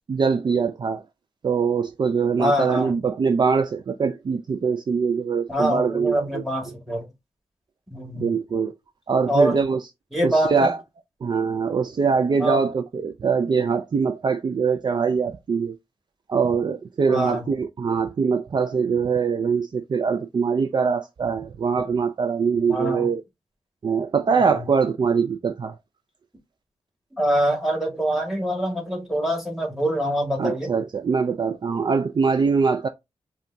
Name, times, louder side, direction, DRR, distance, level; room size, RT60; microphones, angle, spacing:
voice 1, 0.1-1.0 1.4-6.4 8.1-8.7 9.1-9.8 10.2-10.8 11.2-15.8 16.3-23.2 23.8-25.8 30.4-32.9, right 5 dB, 45° right, 0.4 m, -23 dB
voice 2, 2.4-3.0 5.5-7.1 7.9-8.3 9.3-9.6 10.1-10.7 12.4-12.6 17.1-17.5 22.7-23.1 24.4-24.6 27.2-30.7, right 1 dB, 5° right, 1.6 m, -24 dB
5.1 x 2.3 x 2.6 m
wide cardioid pair, 85°, 10 cm